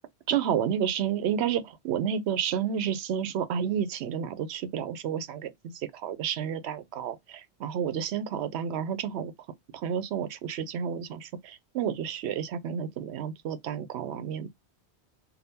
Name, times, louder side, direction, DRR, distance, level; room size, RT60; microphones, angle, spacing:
voice 1, 0.3-9.3 9.7-14.5, right 8 dB, 80° right, 0.8 m, -30 dB
3.5 x 2.2 x 2.7 m
omnidirectional pair, 1.1 m